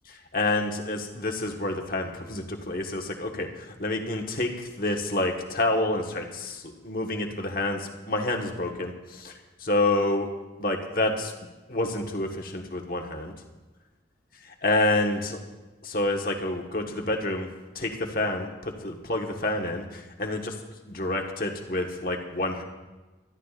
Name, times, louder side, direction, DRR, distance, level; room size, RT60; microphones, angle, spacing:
voice 1, 0.1-9.3 9.6-10.3 10.6-11.3 11.7-13.3 14.6-15.4 15.8-17.5 17.7-20.5 20.9-22.6, left 2 dB, 50° left, 2 dB, 1.4 m, -28 dB
22.0 x 13.5 x 2.5 m, 1.2 s
head